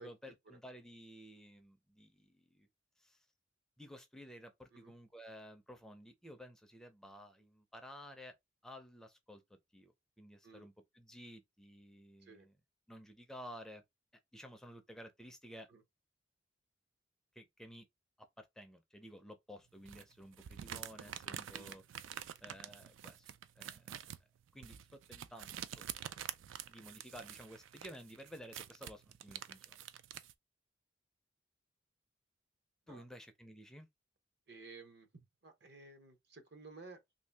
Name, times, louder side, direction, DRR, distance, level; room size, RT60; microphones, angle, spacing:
voice 1, 0.0-2.7 3.0-3.3 3.8-8.3 8.6-9.4 9.7-12.5 12.9-13.8 14.3-15.7 17.4-17.9 18.2-21.8 22.4-24.1 24.5-25.9 26.7-29.8 32.9-33.9, equal, 5° left, 0.4 m, -53 dB
sound 1, 19.8-30.3, right 10 dB, 90° right, 0.4 m, -47 dB
voice 2, 34.5-37.0, right 3 dB, 60° right, 0.8 m, -54 dB
3.0 x 2.7 x 3.3 m
head